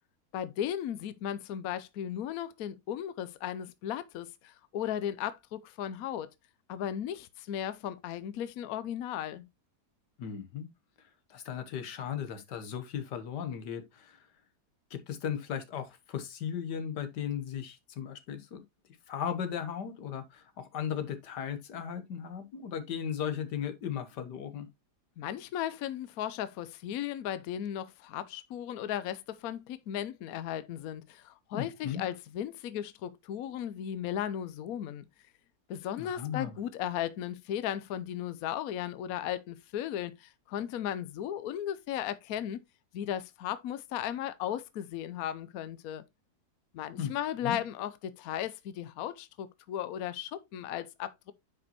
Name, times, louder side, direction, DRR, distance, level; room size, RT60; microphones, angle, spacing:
voice 1, 0.3-6.3 6.7-9.5 25.2-35.0 35.7-42.6 42.9-46.0 46.7-51.3, left 10 dB, 70° left, 1.0 m, -36 dB
voice 2, 10.2-10.7 11.0-14.3 14.9-18.6 19.1-24.7 31.5-32.0 35.9-36.6 46.9-47.1 47.4-47.6, left 8 dB, 85° left, 1.7 m, -36 dB
9.5 x 5.1 x 2.8 m
omnidirectional pair, 1.8 m